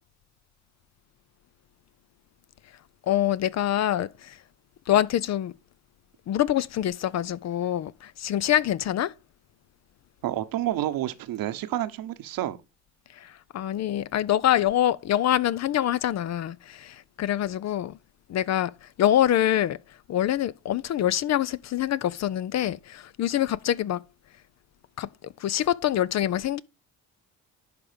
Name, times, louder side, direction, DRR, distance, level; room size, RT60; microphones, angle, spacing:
voice 1, 3.1-4.4 4.9-5.5 6.3-9.1 13.2-17.9 18.3-19.8 20.1-24.0 25.0-25.1 25.4-26.6, left 11 dB, 45° left, 0.5 m, -25 dB
voice 2, 10.2-12.6, right 13 dB, 60° right, 1.0 m, -29 dB
10.5 x 3.6 x 5.0 m
hypercardioid pair, 55°, 39 cm